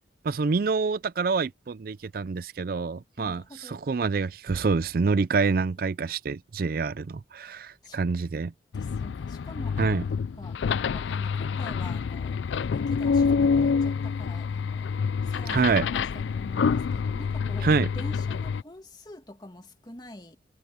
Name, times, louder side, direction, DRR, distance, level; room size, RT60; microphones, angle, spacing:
voice 1, 0.2-8.5 9.8-10.0 15.5-15.9 17.6-17.9, right 4 dB, 55° right, 0.4 m, -26 dB
voice 2, 3.2-3.8 7.5-8.0 8.7-14.9 15.2-20.4, left 1 dB, 25° left, 2.1 m, -45 dB
sound 1, 8.7-18.6, left 5 dB, 90° left, 0.4 m, -27 dB
head